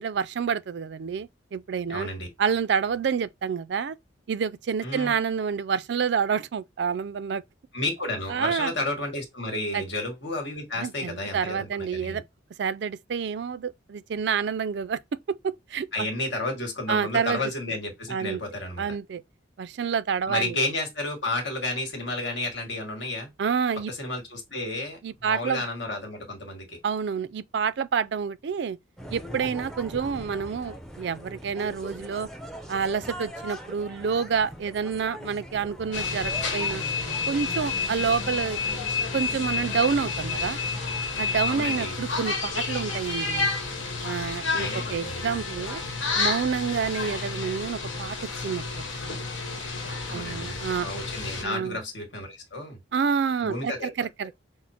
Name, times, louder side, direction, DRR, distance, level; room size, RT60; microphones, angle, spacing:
voice 1, 0.0-2.1 2.4-4.0 4.3-7.4 8.3-8.7 9.7-9.8 10.8-12.2 12.6-15.0 15.4-16.1 16.9-17.4 18.1-18.4 18.8-19.2 19.6-20.6 23.4-23.9 25.0-25.6 26.8-28.8 29.1-32.3 32.7-36.8 37.3-38.6 39.1-40.6 41.2-43.5 44.0-45.8 46.2-48.2 48.4-48.6 49.0-49.2 50.1-50.9 51.4-51.8 52.9-54.3, right 6 dB, 65° right, 0.4 m, -28 dB
voice 2, 1.9-2.3 4.8-5.1 7.7-12.2 15.9-18.9 20.3-23.3 23.9-26.8 41.5-42.0 44.5-45.4 50.1-52.8 53.4-53.9, left 2 dB, 65° left, 1.7 m, -32 dB
sound 1, 29.0-41.6, equal, ahead, 0.5 m, -41 dB
sound 2, 35.9-51.4, left 4 dB, 85° left, 1.2 m, -30 dB
6.1 x 2.0 x 4.2 m
head